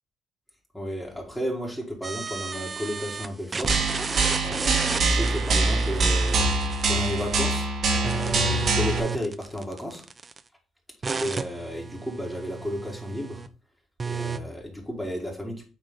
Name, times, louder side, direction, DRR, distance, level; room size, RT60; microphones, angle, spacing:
voice 1, 0.7-3.7 4.4-6.4 6.9-7.7 8.0-10.0 11.2-13.4 14.0-15.7, equal, 5° left, -2 dB, 1.8 m, -33 dB
sound 1, 2.0-3.3 3.5-7.5 7.9-10.4 11.0-13.5 14.0-14.4, right 5 dB, 30° right, 0.4 m, -33 dB
sound 2, 3.7-9.0, right 3 dB, 55° right, 1.5 m, -24 dB
9.0 x 3.3 x 3.6 m, 0.37 s
cardioid pair, 105°, 0 cm